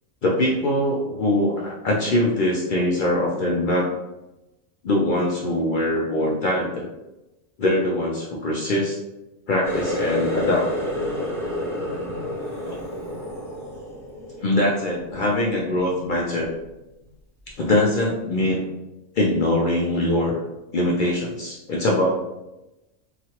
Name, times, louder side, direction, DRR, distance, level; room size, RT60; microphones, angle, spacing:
voice 1, 0.2-3.8 4.8-6.9 7.6-9.0 9.5-10.7 12.6-12.8 14.4-16.5 17.6-18.6 19.2-20.4 20.7-22.2, left 1 dB, 70° left, -3 dB, 0.4 m, -22 dB
Water tap faucet, 9.6-15.1 15.5-16.0 16.4-16.7 17.5-17.6, equal, 5° left, 0.6 m, -29 dB
2.9 x 2.4 x 2.8 m, 0.97 s
omnidirectional pair, 1.4 m